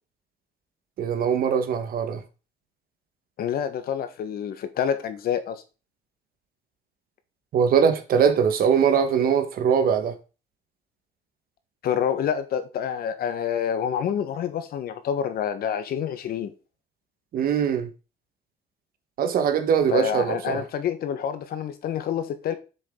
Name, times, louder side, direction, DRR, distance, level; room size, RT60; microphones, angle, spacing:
voice 1, 1.0-2.2 7.5-10.1 17.3-17.9 19.2-20.6, right 7 dB, 60° right, 1.5 m, -22 dB
voice 2, 3.4-5.6 11.8-16.5 19.9-22.5, left 8 dB, 60° left, 1.4 m, -27 dB
7.6 x 6.7 x 3.8 m
cardioid pair, 110°, 17 cm